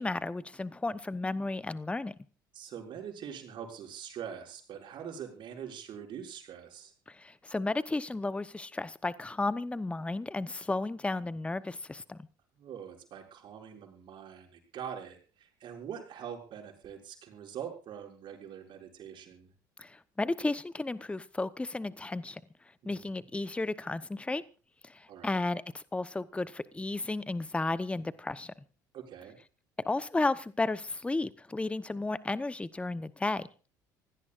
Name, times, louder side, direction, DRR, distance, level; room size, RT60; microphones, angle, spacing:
voice 1, 0.0-2.1 7.1-12.2 19.8-22.4 22.8-24.4 24.8-28.5 29.8-33.5, left 2 dB, 10° left, 0.9 m, -33 dB
voice 2, 2.5-6.9 12.5-19.5 22.8-23.2 25.1-25.4 28.9-29.4, right 8 dB, 50° right, 6.3 m, -44 dB
26.5 x 17.0 x 2.6 m
hypercardioid pair, 65°, 10 cm